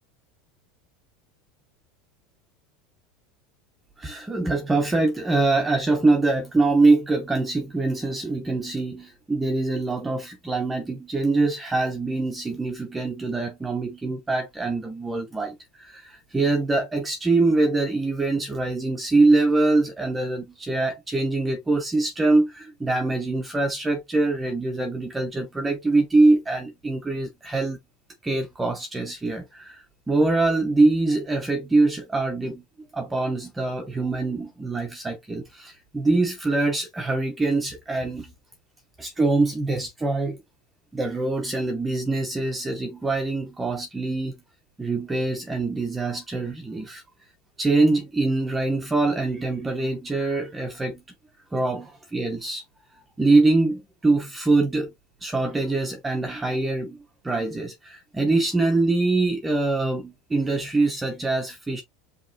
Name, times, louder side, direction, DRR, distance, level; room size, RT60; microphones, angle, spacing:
voice 1, 4.0-27.8 28.2-32.6 32.9-38.3 39.0-40.4 40.9-44.3 44.8-47.0 47.6-51.0 51.5-52.6 52.9-54.9 55.2-57.0 57.2-61.8, right 3 dB, 10° right, 0.8 m, -24 dB
5.4 x 3.0 x 2.6 m
supercardioid pair, 135°, 0 cm